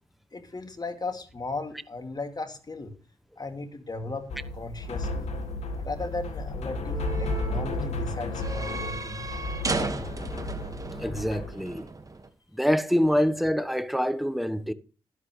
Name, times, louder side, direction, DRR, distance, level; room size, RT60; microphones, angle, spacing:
voice 1, 0.3-2.9 3.4-4.3 4.5-5.3 5.8-9.3 9.8-10.1, left 3 dB, 35° left, 2.5 m, -36 dB
sound 1, 4.0-12.3, right 3 dB, 30° right, 1.7 m, -37 dB
sound 2, 4.3-11.8, left 2 dB, 75° left, 1.6 m, -33 dB
voice 2, 11.0-11.8 12.5-14.7, equal, ahead, 1.1 m, -25 dB
12.0 x 11.0 x 3.2 m
supercardioid pair, 40°, 11 cm